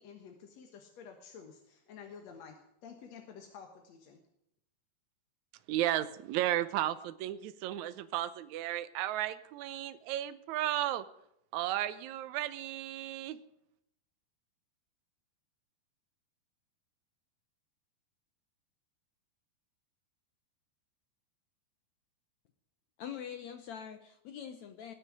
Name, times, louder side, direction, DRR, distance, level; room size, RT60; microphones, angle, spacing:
voice 1, 0.0-4.2, left 6 dB, 55° left, 3 dB, 2.2 m, -51 dB
voice 2, 5.7-11.1 11.5-13.4, right 13 dB, 75° right, 12 dB, 1.7 m, -34 dB
voice 3, 23.0-24.9, left 8 dB, 75° left, 8 dB, 1.7 m, -44 dB
20.0 x 6.7 x 9.8 m, 0.78 s
omnidirectional pair, 4.3 m